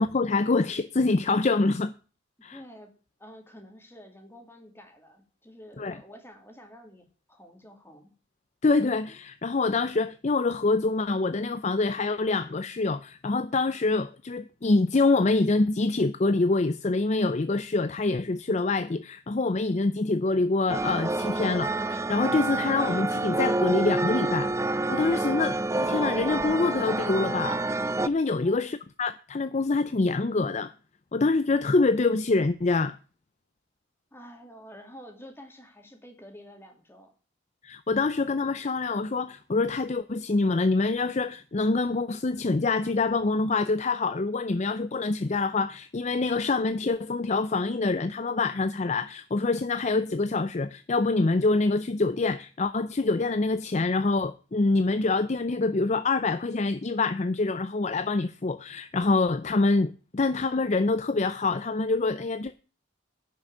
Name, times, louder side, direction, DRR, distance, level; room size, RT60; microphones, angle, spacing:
voice 1, 0.0-1.9 2.4-2.6 5.8-5.9 8.6-24.5 24.9-27.6 28.0-30.7 31.1-33.0 37.6-62.6, left 3 dB, 35° left, 0.5 m, -25 dB
voice 2, 2.5-2.9 3.2-8.1 28.4-28.7 34.1-37.1, equal, 10° left, 2.6 m, -49 dB
sound 1, 20.7-28.1, right 2 dB, 15° right, 0.5 m, -28 dB
10.5 x 6.3 x 8.8 m
head